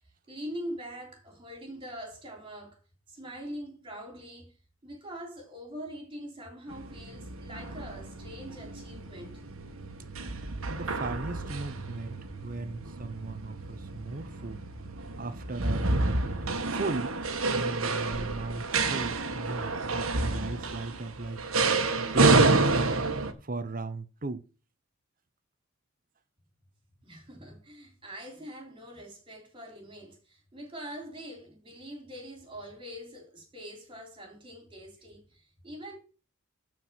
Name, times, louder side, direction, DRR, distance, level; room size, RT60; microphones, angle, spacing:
voice 1, 0.3-2.8 3.1-4.5 4.8-9.4 27.0-36.0, equal, 25° right, 3.6 m, -43 dB
sound 1, 6.7-23.3, right 3 dB, 85° right, 1.4 m, -29 dB
voice 2, 10.7-14.7 15.2-17.2 17.5-21.4 22.0-22.9 23.4-24.5, right 3 dB, 40° right, 0.8 m, -37 dB
12.5 x 4.7 x 5.8 m
head